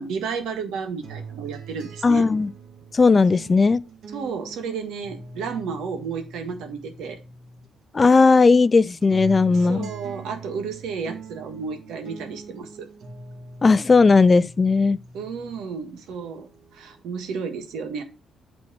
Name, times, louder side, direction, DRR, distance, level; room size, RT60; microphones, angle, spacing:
voice 1, 0.0-2.3 4.1-7.2 9.5-12.9 15.1-18.0, right 5 dB, 85° right, 1.4 m, -32 dB
sound 1, 1.0-7.7 8.0-15.7 16.1-17.0, right 5 dB, 70° right, 1.8 m, -42 dB
voice 2, 2.0-2.5 2.9-3.8 7.9-9.9 13.6-15.0, left 4 dB, 30° left, 0.3 m, -16 dB
8.5 x 3.2 x 5.9 m
cardioid pair, 90°, 0 cm